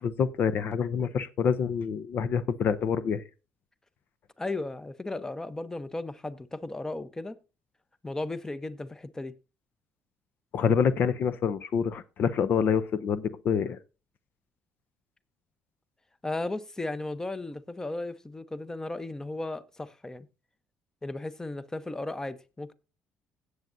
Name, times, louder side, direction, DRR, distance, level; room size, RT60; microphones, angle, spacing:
voice 1, 0.0-3.2 10.5-13.8, left 7 dB, 60° left, 0.6 m, -27 dB
voice 2, 4.4-7.4 8.0-9.3 16.2-20.3 21.0-22.7, left 2 dB, 15° left, 0.8 m, -35 dB
17.0 x 7.9 x 2.6 m
cardioid pair, 85°, 4 cm